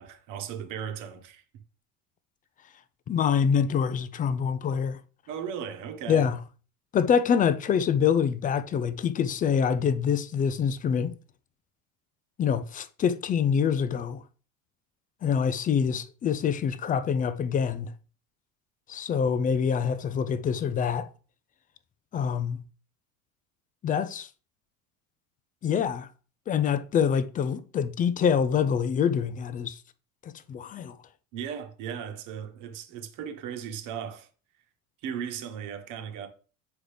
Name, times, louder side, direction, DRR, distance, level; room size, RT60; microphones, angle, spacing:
voice 1, 0.0-1.4 5.3-6.3 31.3-34.3 35.0-36.3, right 8 dB, 45° right, 1.3 m, -36 dB
voice 2, 3.1-5.0 6.1-6.4 6.9-11.1 12.4-14.2 15.2-17.9 18.9-21.1 22.1-22.6 23.8-24.3 25.6-26.1 26.5-29.8 30.2-31.0, left 7 dB, 20° left, 0.5 m, -25 dB
8.3 x 4.9 x 3.3 m
figure-of-eight pair, 70°, 42 cm